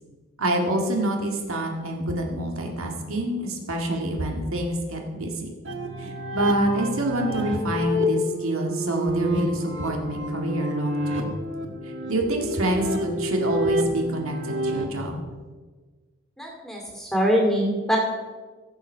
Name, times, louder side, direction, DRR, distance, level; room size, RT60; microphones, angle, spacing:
voice 1, 0.4-5.5 6.0-11.3 11.8-15.2, right 1 dB, 80° right, 1 dB, 1.9 m, -27 dB
sound 1, 5.7-14.8, equal, 60° right, 1.5 m, -28 dB
voice 2, 16.4-18.0, equal, ahead, -1 dB, 2.2 m, -23 dB
16.0 x 7.3 x 5.5 m, 1.4 s
head